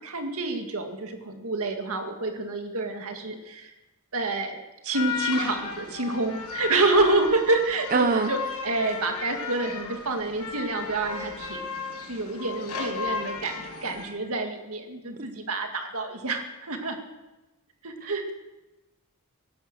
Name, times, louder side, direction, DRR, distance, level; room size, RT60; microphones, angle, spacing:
voice 1, 0.0-3.7 4.1-4.6 4.8-11.7 12.1-17.0 17.8-18.3, right 2 dB, 70° right, 4 dB, 2.1 m, -28 dB
sound 1, 4.9-14.1, left 5 dB, 85° left, 5.0 m, -35 dB
voice 2, 7.9-8.3 18.0-18.3, right 4 dB, 40° right, 8 dB, 0.6 m, -24 dB
16.5 x 11.5 x 6.2 m, 1.1 s
head